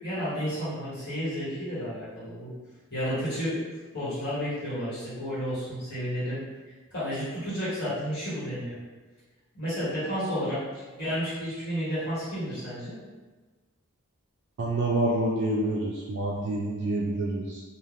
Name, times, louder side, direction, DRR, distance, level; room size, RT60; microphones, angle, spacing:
voice 1, 0.0-2.5 2.9-3.6 3.9-6.4 6.9-8.8 9.5-10.6 11.0-12.9, equal, 50° left, -12 dB, 1.4 m, -31 dB
voice 2, 14.6-17.6, right 1 dB, 50° right, -2 dB, 0.3 m, -27 dB
3.2 x 2.4 x 2.5 m, 1.3 s
head